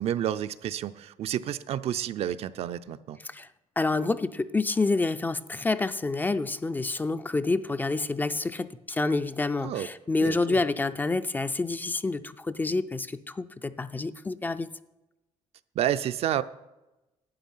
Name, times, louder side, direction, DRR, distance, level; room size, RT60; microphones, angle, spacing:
voice 1, 0.0-3.2 9.6-9.9 10.2-10.6 15.8-16.4, right 11 dB, 60° right, 0.5 m, -30 dB
voice 2, 3.8-14.7, left 3 dB, 15° left, 0.4 m, -28 dB
11.5 x 8.5 x 5.5 m
cardioid pair, 130°, 11 cm